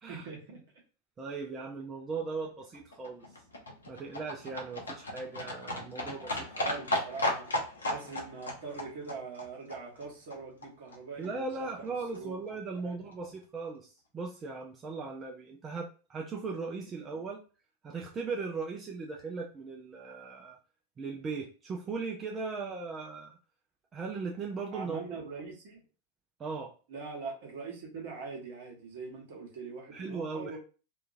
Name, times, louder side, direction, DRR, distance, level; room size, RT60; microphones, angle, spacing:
voice 1, 0.1-0.6 6.5-7.5 7.9-11.8 12.1-12.4 12.8-13.0 24.7-25.8 26.9-30.6, right 4 dB, 55° right, -1 dB, 1.1 m, -42 dB
voice 2, 1.2-3.2 3.8-6.7 11.2-17.4 17.8-20.6 21.0-23.4 23.9-25.0 26.4-26.7 29.9-30.6, right 4 dB, 20° right, 0 dB, 0.4 m, -38 dB
Livestock farm animals working animals, 2.4-10.7 10.9-11.0 11.2-11.3 11.5-11.6 11.8-11.9 12.1-12.2 12.5-12.6 12.8-12.9 13.1-13.2, left 1 dB, 75° left, 0.7 m, -36 dB
2.8 x 2.3 x 2.5 m, 0.36 s
figure-of-eight pair, 90°, 0 cm